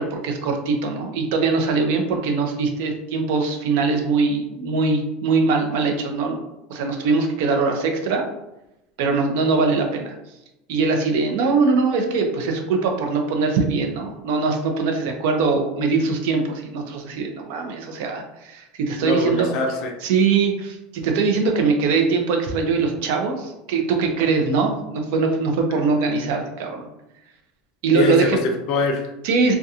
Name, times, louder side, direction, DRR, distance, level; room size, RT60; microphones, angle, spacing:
voice 1, 0.0-6.4 6.7-8.2 9.0-10.1 10.7-19.5 20.0-26.9 27.8-28.4 29.2-29.6, right 4 dB, 65° right, 3 dB, 0.5 m, -22 dB
voice 2, 19.0-19.9 25.7-25.8 27.9-29.1, left 3 dB, 50° left, 4 dB, 0.4 m, -23 dB
2.7 x 2.2 x 2.4 m, 0.92 s
supercardioid pair, 155°, 0 cm